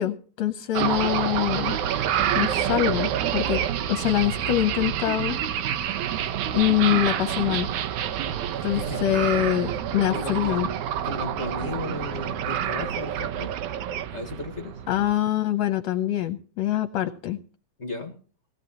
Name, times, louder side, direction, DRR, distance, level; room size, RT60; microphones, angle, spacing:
voice 1, 0.0-1.8 2.4-3.6 3.9-5.4 5.7-5.8 6.5-7.7 8.6-10.7 14.9-17.4, left 13 dB, 75° left, 7 dB, 1.8 m, -24 dB
sound 1, 0.7-15.1, right 10 dB, 75° right, 2.2 m, -28 dB
voice 2, 8.5-9.0 9.5-9.7 10.1-10.7 11.0-13.5 14.1-14.8 17.8-18.1, left 2 dB, 35° left, 3 dB, 1.1 m, -35 dB
18.5 x 14.5 x 2.9 m, 0.40 s
omnidirectional pair, 3.5 m